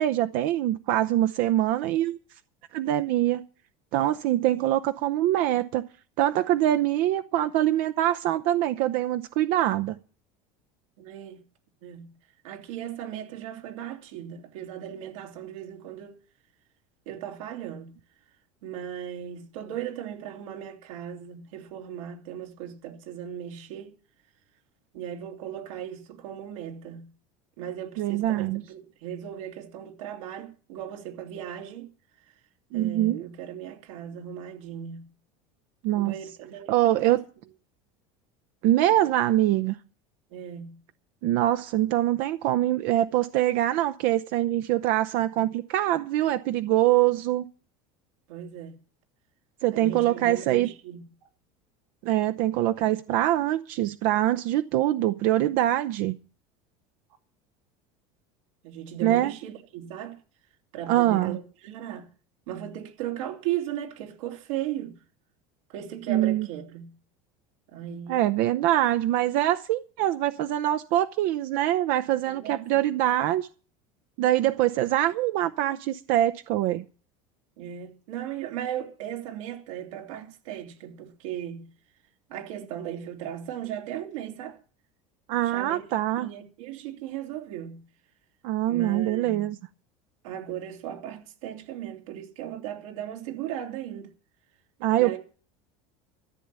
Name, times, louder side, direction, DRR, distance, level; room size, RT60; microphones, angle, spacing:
voice 1, 0.0-2.2 2.7-3.4 3.9-5.8 6.2-10.0 28.0-28.6 32.7-33.2 35.8-36.1 36.7-37.2 38.6-39.8 41.2-47.4 49.6-50.7 52.0-56.2 59.0-59.3 60.9-61.4 66.1-66.5 68.1-73.5 74.2-76.8 85.3-86.3 88.4-89.6 94.8-95.2, right 13 dB, 60° right, 0.7 m, -24 dB
voice 2, 11.0-11.4 11.8-12.1 12.4-16.2 17.1-17.9 18.6-23.9 24.9-27.1 27.6-31.9 32.2-32.3 32.7-35.0 35.9-37.2 40.3-40.8 48.3-48.8 49.7-51.1 58.6-60.2 60.7-62.1 62.5-65.0 65.7-66.9 67.7-68.3 72.2-72.9 77.6-81.7 82.3-84.6 85.4-85.8 86.2-87.8 88.6-89.5 90.2-94.1 95.0-95.2, right 10 dB, 85° right, 2.9 m, -37 dB
14.0 x 6.9 x 8.8 m
supercardioid pair, 140°, 17 cm